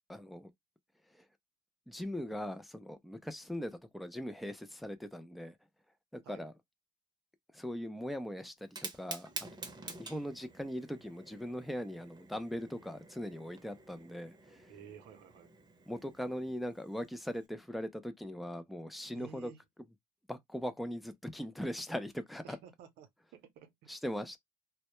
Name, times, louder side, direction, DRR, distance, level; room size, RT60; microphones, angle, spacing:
voice 1, 0.1-0.5 1.1-1.2 1.9-5.6 6.1-6.5 7.5-9.3 10.0-14.7 15.9-19.5 20.3-22.6 23.9-24.4, equal, ahead, 0.3 m, -40 dB
Fire, 8.6-17.5, right 3 dB, 25° right, 0.7 m, -49 dB
voice 2, 14.7-15.5 19.1-19.6 22.4-23.9, right 8 dB, 75° right, 0.6 m, -53 dB
2.1 x 2.1 x 2.9 m
cardioid pair, 110°, 17 cm